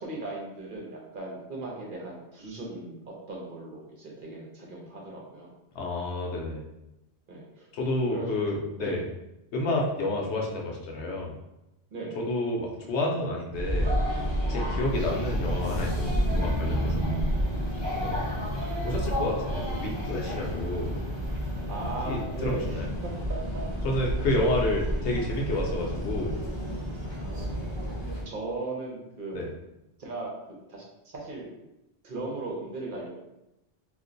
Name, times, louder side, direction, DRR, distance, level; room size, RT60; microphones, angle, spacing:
voice 1, 0.0-5.5 7.3-7.7 8.1-8.4 8.8-9.1 11.9-12.2 14.6-14.8 18.0-18.6 21.7-23.4 24.4-24.7 25.6-25.8 27.0-27.6 28.2-29.5 30.0-30.3 30.7-31.5 32.0-33.1, right 2 dB, 55° right, -2 dB, 0.9 m, -38 dB
voice 2, 5.7-6.6 7.7-9.0 9.5-11.3 12.2-13.9 14.5-17.1 18.8-21.0 22.1-22.9 23.8-26.4 29.3-29.5, left 1 dB, 90° left, -1 dB, 0.9 m, -30 dB
sound 1, 13.5-28.2, equal, 25° right, 0.9 m, -30 dB
2.5 x 2.2 x 3.7 m, 0.92 s
omnidirectional pair, 1.1 m